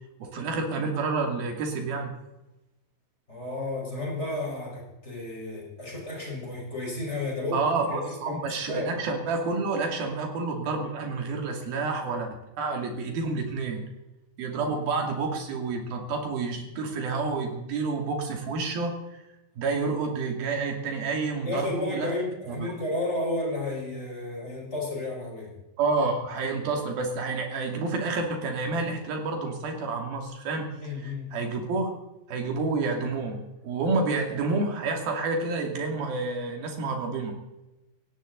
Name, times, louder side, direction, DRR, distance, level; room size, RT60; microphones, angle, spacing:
voice 1, 0.2-2.1 7.5-12.3 12.6-13.8 14.4-19.0 19.6-22.1 22.5-22.7 25.8-31.9 32.3-37.3, right 3 dB, 90° right, 2 dB, 4.5 m, -29 dB
voice 2, 3.3-7.6 7.9-8.0 8.2-8.9 21.4-25.5 30.8-31.3, left 2 dB, 15° left, -3 dB, 5.2 m, -32 dB
17.5 x 17.0 x 4.0 m, 0.98 s
omnidirectional pair, 4.1 m